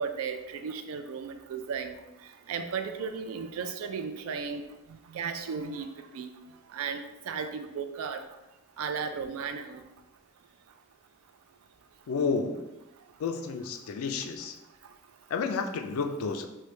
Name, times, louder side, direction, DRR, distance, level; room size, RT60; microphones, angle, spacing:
voice 1, 0.0-2.0 2.5-4.6 5.1-5.9 6.1-6.3 6.7-8.2 8.8-9.8, right 6 dB, 65° right, 8 dB, 0.3 m, -35 dB
voice 2, 12.1-12.6 13.2-14.6 15.3-16.5, left 4 dB, 70° left, 5 dB, 0.3 m, -31 dB
3.1 x 2.2 x 3.1 m, 1.0 s
head